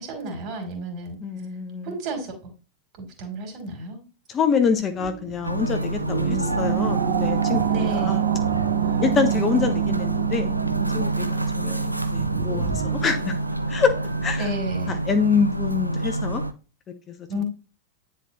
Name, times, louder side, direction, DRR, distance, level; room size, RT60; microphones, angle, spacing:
voice 1, 0.0-1.2 1.8-2.5 3.0-4.0 7.7-8.2 14.4-15.0 17.3-17.4, right 1 dB, 40° right, 3.1 m, -32 dB
voice 2, 1.2-1.9 4.3-8.2 9.0-10.5 10.9-13.3 13.7-13.9 14.2-14.5 14.9-16.4, left 6 dB, 25° left, 0.9 m, -25 dB
sound 1, 4.8-14.4, right 12 dB, 55° right, 0.8 m, -27 dB
sound 2, 5.4-16.5, right 2 dB, 90° right, 0.5 m, -28 dB
Marimba xylophone, 6.1-7.8, left 11 dB, 50° left, 1.4 m, -39 dB
9.9 x 4.3 x 3.0 m
figure-of-eight pair, 90°, 0 cm